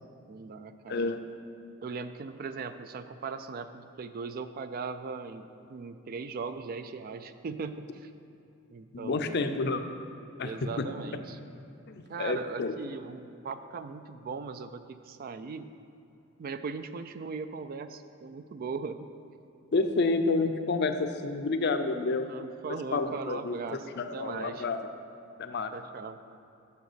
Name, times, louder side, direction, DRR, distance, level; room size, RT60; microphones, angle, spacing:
voice 1, 0.3-1.0 1.8-8.1 8.7-9.4 10.4-11.4 12.1-15.7 16.4-19.1 22.2-23.9 24.1-24.7 25.7-26.2, right 4 dB, 45° right, 10 dB, 0.4 m, -39 dB
voice 2, 0.9-1.2 8.9-9.8 10.4-10.8 11.9-12.7 19.7-22.3 22.9-23.6 24.0-24.9 25.4-25.7, left 3 dB, 55° left, 7 dB, 0.6 m, -29 dB
7.0 x 6.5 x 6.7 m, 2.8 s
head